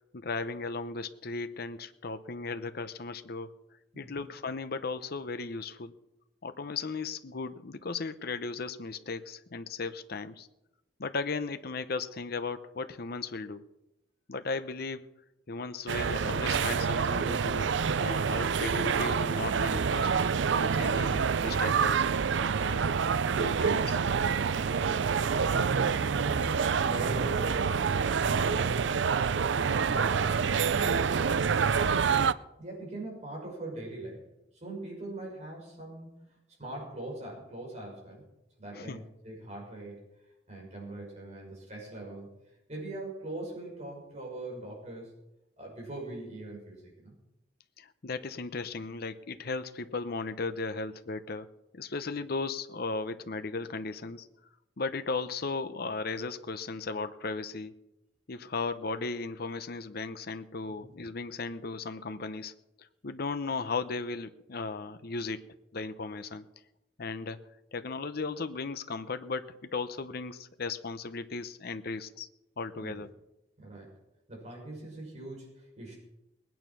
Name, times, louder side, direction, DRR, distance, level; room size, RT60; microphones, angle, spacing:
voice 1, 0.1-3.5 4.0-5.9 6.4-10.5 11.0-13.7 14.3-15.1 15.5-20.1 20.5-22.1 22.6-23.0 23.4-24.0 38.7-39.0 47.8-51.5 51.7-54.3 54.8-57.7 58.3-65.5 65.7-66.4 67.0-67.4 67.7-72.3 72.6-73.1, left 4 dB, 60° left, 10 dB, 0.8 m, -36 dB
voice 2, 3.9-4.2 24.5-29.1 29.6-32.0 32.6-34.2 34.5-36.2 36.6-38.2 38.6-40.0 40.5-42.3 42.7-45.1 45.6-47.1 60.8-60.9 65.2-65.3 72.8-73.0 73.6-73.9 74.3-76.0, right 2 dB, 40° right, -1 dB, 6.1 m, -42 dB
sound 1, 15.9-32.3, right 6 dB, 80° right, 0.5 m, -27 dB
20.0 x 9.2 x 6.1 m, 0.90 s
head